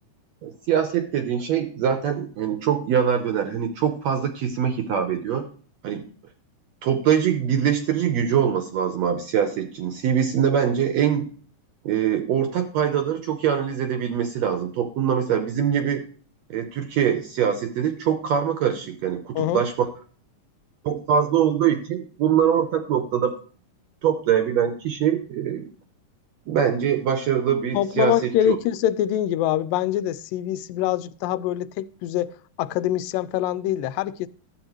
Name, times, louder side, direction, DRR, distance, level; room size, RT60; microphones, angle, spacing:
voice 1, 0.4-5.5 5.8-6.1 6.8-11.2 11.8-16.0 16.5-19.9 20.8-23.3 24.0-25.7 26.5-28.6, right 8 dB, 70° right, 1.7 m, -23 dB
voice 2, 27.7-34.3, left 12 dB, 85° left, 2.2 m, -24 dB
12.0 x 7.9 x 3.0 m
omnidirectional pair, 3.9 m